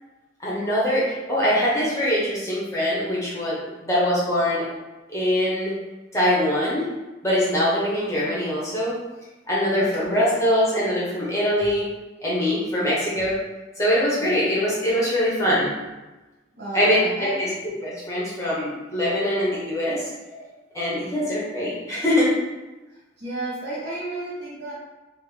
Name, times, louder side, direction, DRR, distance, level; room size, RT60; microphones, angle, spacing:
voice 1, 0.4-4.7 5.1-5.8 6.1-6.9 7.2-9.0 9.5-11.9 12.2-13.4 13.8-15.7 16.7-20.1 20.7-22.3, equal, 15° left, -7 dB, 0.8 m, -23 dB
voice 2, 9.7-10.2 14.2-14.4 16.6-17.5 20.3-20.4 21.0-21.3 23.2-24.7, right 2 dB, 60° right, -6 dB, 1.2 m, -33 dB
3.5 x 2.0 x 3.1 m, 1.1 s
head